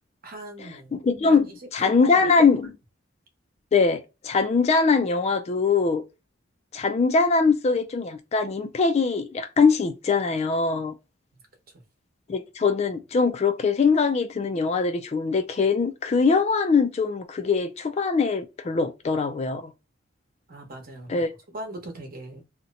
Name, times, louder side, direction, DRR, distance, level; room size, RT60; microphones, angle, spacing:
voice 1, 0.2-0.9 1.3-2.3 20.5-21.2 21.5-22.4, right 1 dB, 50° right, 0.9 m, -40 dB
voice 2, 0.9-2.7 3.7-6.0 6.7-10.9 12.3-19.7 21.1-21.3, left 4 dB, 35° left, 0.3 m, -22 dB
2.8 x 2.1 x 3.8 m
head